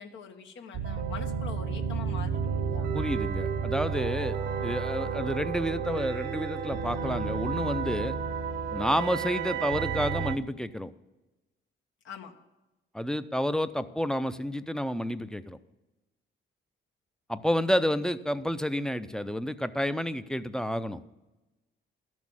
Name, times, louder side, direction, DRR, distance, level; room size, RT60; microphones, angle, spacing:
voice 1, 0.0-2.9 12.0-12.4, left 6 dB, 70° left, 5 dB, 1.3 m, -43 dB
sound 1, 0.7-10.4, right 6 dB, 65° right, 1.0 m, -31 dB
voice 2, 2.9-8.2 8.7-10.9 12.9-15.6 17.3-21.0, equal, 5° left, 12 dB, 0.6 m, -30 dB
12.0 x 6.3 x 8.8 m, 1.0 s
cardioid pair, 90°, 20 cm